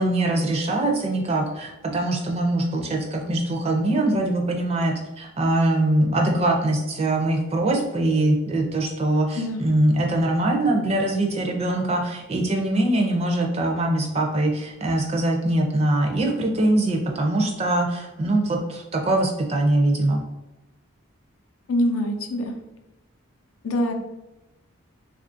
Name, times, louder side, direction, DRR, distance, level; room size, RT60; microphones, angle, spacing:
voice 1, 0.0-20.2, right 1 dB, 30° right, 2 dB, 0.4 m, -22 dB
voice 2, 21.7-22.5 23.6-23.9, left 1 dB, 85° left, 4 dB, 0.5 m, -24 dB
3.5 x 2.4 x 2.5 m, 0.98 s
head